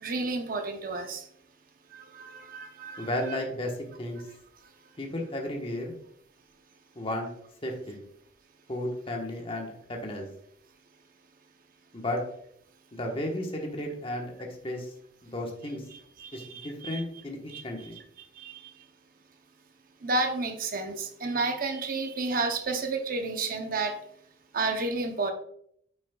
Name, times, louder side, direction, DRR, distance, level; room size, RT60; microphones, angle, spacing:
voice 1, 0.0-1.2 1.9-3.4 16.2-17.0 17.5-17.6 18.4-18.5 20.0-24.0 24.5-25.3, right 3 dB, 45° right, 6 dB, 0.7 m, -31 dB
voice 2, 3.0-3.7 4.0-4.2 5.0-5.9 6.9-7.3 7.6-8.0 8.7-10.3 11.9-12.2 12.9-14.9 15.2-15.8 16.3-18.0, left 1 dB, 30° left, 1 dB, 1.2 m, -33 dB
9.1 x 6.2 x 2.3 m, 0.68 s
head